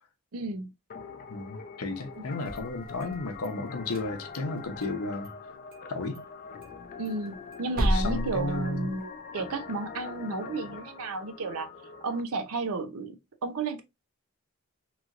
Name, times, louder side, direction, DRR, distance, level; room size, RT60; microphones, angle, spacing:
voice 1, 0.3-0.7 7.0-11.7 12.0-13.1 13.4-13.8, right 3 dB, 80° right, 0.6 m, -32 dB
sound 1, 0.9-12.2, left 5 dB, 40° left, 0.4 m, -44 dB
voice 2, 1.3-5.3 5.9-6.2 7.9-9.0, left 3 dB, 80° left, 0.7 m, -33 dB
sound 2, 2.3-3.5 3.8-5.0 5.2-5.3 5.7-5.9 6.1-6.2 6.6-9.2, equal, 45° right, 0.8 m, -33 dB
3.0 x 3.0 x 2.4 m
head